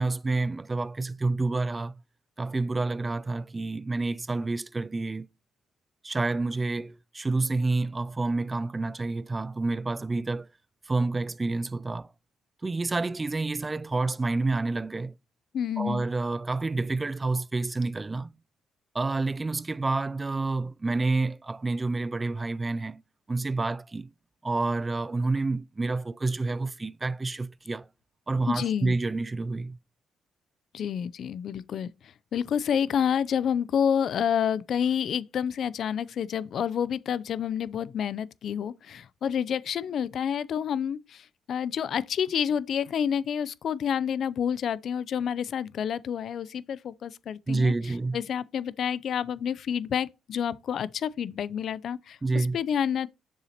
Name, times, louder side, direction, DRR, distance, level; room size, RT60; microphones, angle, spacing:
voice 1, 0.0-2.0 2.4-5.3 6.0-10.5 10.9-12.1 12.6-15.1 15.8-18.3 18.9-23.0 23.3-24.1 24.4-27.9 28.3-29.8 47.5-48.2 52.2-52.6, right 3 dB, 25° right, 0.3 m, -28 dB
voice 2, 15.5-16.0 28.5-28.9 30.7-47.7 48.1-53.1, left 8 dB, 65° left, 0.5 m, -29 dB
7.3 x 6.7 x 2.9 m
cardioid pair, 90°, 0 cm